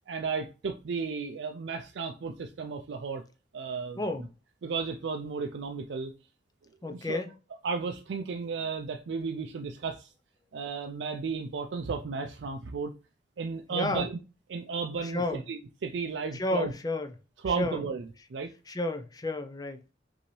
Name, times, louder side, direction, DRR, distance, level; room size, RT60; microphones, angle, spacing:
voice 1, 0.1-3.2 3.5-4.0 4.6-6.1 6.9-7.2 7.6-10.1 10.5-12.9 13.4-14.1 14.5-16.7 17.4-18.0 18.3-18.5, right 5 dB, 85° right, 0.4 m, -34 dB
voice 2, 4.0-4.3 6.8-7.3 13.7-14.1 15.0-15.4 16.3-17.1 17.5-17.8 18.7-19.9, left 2 dB, 20° left, 0.4 m, -32 dB
5.6 x 2.7 x 3.0 m
head